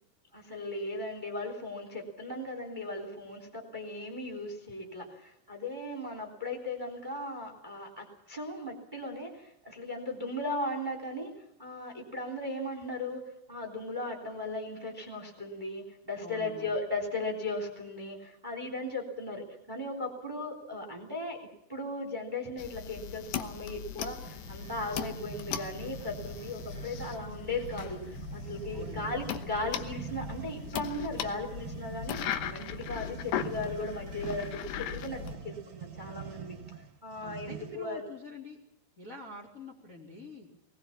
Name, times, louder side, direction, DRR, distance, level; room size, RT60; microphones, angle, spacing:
voice 1, 0.3-11.3 11.6-21.4 21.7-36.6 37.0-38.1, left 2 dB, 10° right, 2 dB, 2.6 m, -37 dB
voice 2, 16.2-16.7 28.7-29.1 37.2-38.6 39.0-40.5, left 2 dB, 20° left, 1 dB, 2.5 m, -46 dB
sound 1, 22.6-35.4, left 9 dB, 75° left, 2.7 m, -39 dB
sound 2, 24.2-37.9, right 8 dB, 50° right, 2.2 m, -45 dB
20.5 x 20.0 x 7.3 m, 0.81 s
omnidirectional pair, 5.6 m